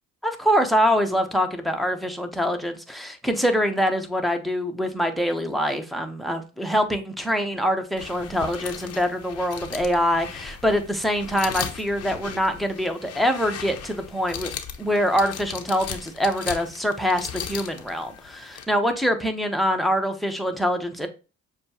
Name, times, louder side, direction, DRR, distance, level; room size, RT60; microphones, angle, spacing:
voice 1, 0.2-14.5 14.8-21.1, equal, ahead, 6 dB, 1.0 m, -24 dB
sound 1, 8.0-18.7, left 8 dB, 50° left, 0.8 m, -37 dB
6.6 x 2.3 x 2.9 m, 0.32 s
supercardioid pair, 65°, 33 cm